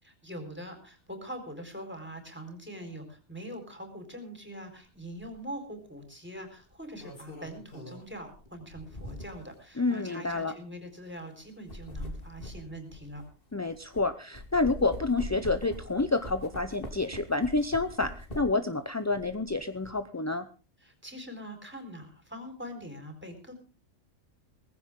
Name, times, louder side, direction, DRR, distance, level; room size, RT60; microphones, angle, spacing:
voice 1, 0.0-13.2 20.8-23.5, equal, 10° right, 5 dB, 4.3 m, -43 dB
sound 1, 5.2-5.4 6.7-9.5 10.2-10.4 11.4-14.0 14.3-18.7 19.1-19.9, left 1 dB, 45° left, 3.6 m, -43 dB
voice 2, 9.8-10.5 13.5-20.5, left 3 dB, 20° left, 9 dB, 0.5 m, -29 dB
19.0 x 15.5 x 3.7 m, 0.36 s
omnidirectional pair, 1.3 m